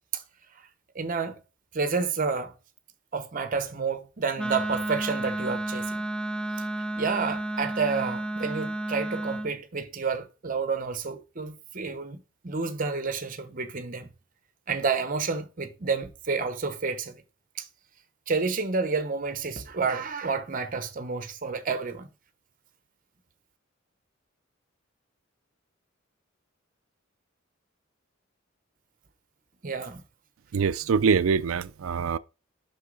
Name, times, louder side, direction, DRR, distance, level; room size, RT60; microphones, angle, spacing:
voice 1, 0.9-1.4 1.7-2.5 3.1-6.0 7.0-14.1 14.7-17.2 17.6-17.7 18.3-22.1 29.6-30.0, right 4 dB, 45° right, 0.9 m, -30 dB
Wind instrument woodwind instrument, 4.4-9.5, right 1 dB, 5° left, 0.3 m, -31 dB
voice 2, 30.5-32.2, right 5 dB, 90° right, 0.4 m, -24 dB
6.6 x 5.7 x 3.9 m
head